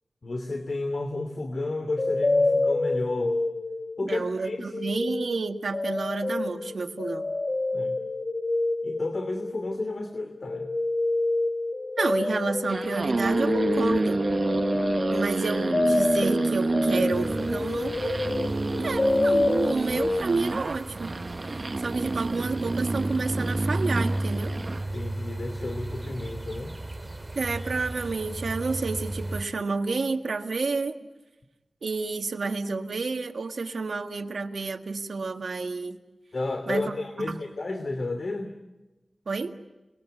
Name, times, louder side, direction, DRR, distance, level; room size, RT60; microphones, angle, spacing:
voice 1, 0.2-3.4 4.0-4.7 7.7-8.0 8.8-10.7 24.9-26.7 36.3-38.6, left 2 dB, 65° left, 7 dB, 2.7 m, -32 dB
sound 1, 1.9-4.2 4.5-20.2, left 2 dB, 50° left, 1.5 m, -28 dB
voice 2, 4.0-7.2 12.0-14.2 15.1-18.3 18.8-21.1 21.8-24.5 27.4-31.0 31.8-36.0 36.7-36.9 37.3-37.4 39.3-39.5, right 4 dB, 90° right, 4 dB, 1.8 m, -30 dB
sound 2, 12.5-24.9, right 3 dB, 55° right, 0.9 m, -29 dB
sound 3, 17.1-29.4, right 1 dB, 25° right, 2.2 m, -34 dB
30.0 x 21.5 x 9.2 m, 1.1 s
wide cardioid pair, 50°, 0 cm